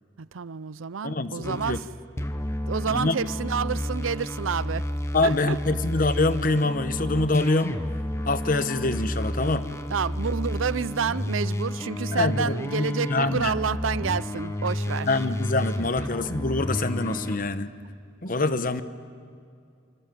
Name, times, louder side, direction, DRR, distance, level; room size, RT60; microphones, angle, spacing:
voice 1, 0.2-1.8 2.7-4.9 5.2-5.6 9.9-15.1, right 6 dB, 85° right, 0.5 m, -29 dB
voice 2, 1.0-1.8 2.9-3.2 5.1-7.8 8.3-9.7 12.1-13.5 15.1-17.7 18.2-18.8, left 2 dB, 45° left, 1.0 m, -25 dB
sound 1, 1.4-1.9 2.2-17.4, left 1 dB, 15° left, 0.8 m, -31 dB
25.5 x 25.5 x 7.7 m
head